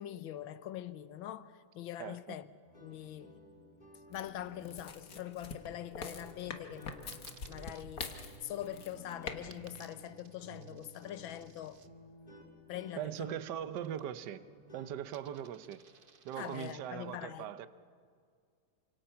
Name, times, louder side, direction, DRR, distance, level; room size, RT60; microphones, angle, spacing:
voice 1, 0.0-2.5 2.8-3.4 4.1-11.8 12.7-13.4 16.4-17.5, left 12 dB, 85° left, 1.6 m, -43 dB
voice 2, 2.0-2.4 13.0-14.4 14.7-15.8 16.2-17.7, right 10 dB, 65° right, 1.4 m, -40 dB
sound 1, 2.7-14.9, equal, 20° left, 4.2 m, -56 dB
sound 2, 4.1-9.4 9.6-9.9, left 5 dB, 50° left, 1.8 m, -44 dB
Coin (dropping), 7.1-7.9 9.5-11.9 13.7-14.4 14.7-16.7, right 6 dB, 40° right, 0.7 m, -60 dB
28.0 x 26.0 x 5.8 m
omnidirectional pair, 2.1 m